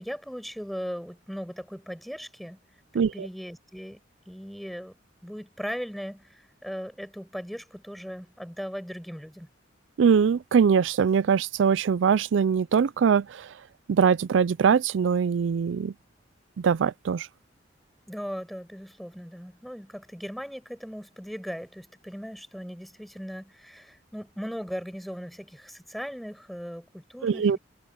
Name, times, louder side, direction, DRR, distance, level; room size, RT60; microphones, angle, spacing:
voice 1, 0.0-2.6 2.9-4.0 4.3-4.9 5.2-9.5 18.1-27.6, equal, ahead, 7.5 m, -38 dB
voice 2, 3.0-3.3 10.0-13.5 13.9-15.9 16.6-17.3 27.2-27.6, right 6 dB, 80° right, 0.4 m, -22 dB
head